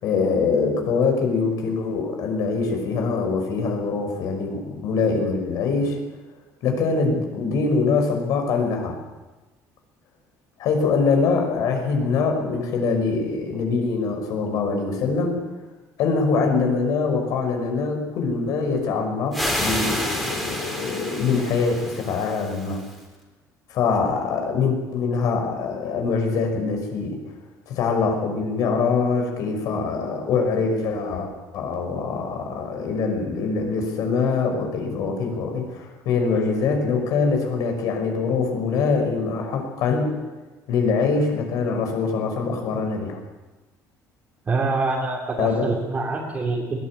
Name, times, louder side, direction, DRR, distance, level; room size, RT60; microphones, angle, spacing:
voice 1, 0.0-6.0 6.6-9.0 10.6-15.5 16.0-22.8 23.7-27.2 27.7-40.1 40.7-43.2 45.4-45.7, left 4 dB, 65° left, 4 dB, 5.8 m, -23 dB
sound 1, 19.3-23.0, equal, ahead, 3.4 m, -29 dB
voice 2, 44.4-46.8, right 3 dB, 20° right, -3 dB, 3.0 m, -25 dB
21.0 x 18.0 x 8.7 m, 1.1 s
cardioid pair, 175°, 7 cm